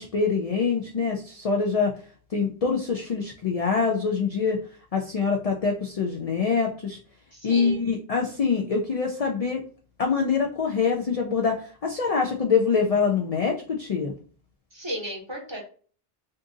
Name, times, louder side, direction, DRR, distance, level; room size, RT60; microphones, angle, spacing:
voice 1, 0.0-1.9 2.3-4.6 4.9-7.0 7.4-9.6 10.0-14.1, left 5 dB, 50° left, 1 dB, 0.4 m, -25 dB
voice 2, 7.3-7.9 14.7-15.6, right 1 dB, 30° right, -1 dB, 0.9 m, -34 dB
2.6 x 2.6 x 3.6 m, 0.42 s
omnidirectional pair, 1.0 m